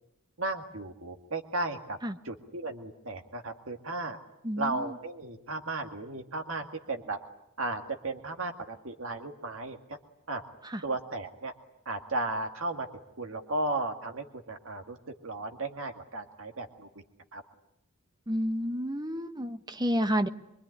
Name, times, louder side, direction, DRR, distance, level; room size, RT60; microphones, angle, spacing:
voice 1, 0.4-2.0 2.2-4.2 4.6-7.2 7.6-10.0 10.3-10.4 10.8-11.5 11.9-12.9 13.2-15.0 15.2-16.9 17.3-17.4, right 2 dB, 75° right, 4 dB, 2.0 m, -35 dB
voice 2, 4.4-4.9 18.3-20.3, equal, 20° right, 10 dB, 1.1 m, -30 dB
24.5 x 24.0 x 9.9 m, 0.83 s
head